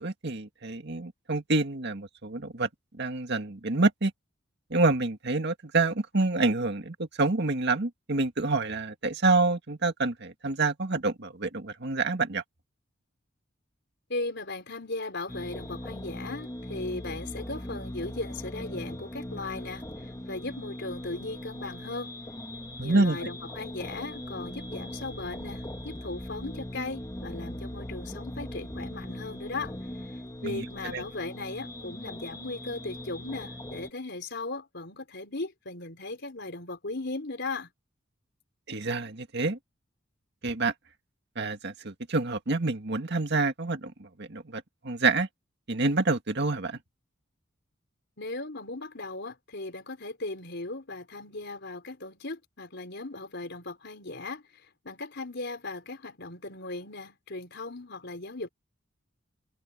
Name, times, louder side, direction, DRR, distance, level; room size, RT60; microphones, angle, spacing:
voice 1, 0.0-2.7 3.0-4.1 4.7-12.4 22.8-23.3 30.4-31.0 38.7-39.6 40.4-40.7 41.4-45.3 45.7-46.8, right 3 dB, 60° right, 1.9 m, -27 dB
voice 2, 14.1-19.9 20.3-22.2 22.8-29.7 30.4-37.7 48.2-54.4 54.8-58.5, left 2 dB, 60° left, 4.4 m, -37 dB
sound 1, 15.3-33.9, left 1 dB, 20° left, 1.8 m, -40 dB
head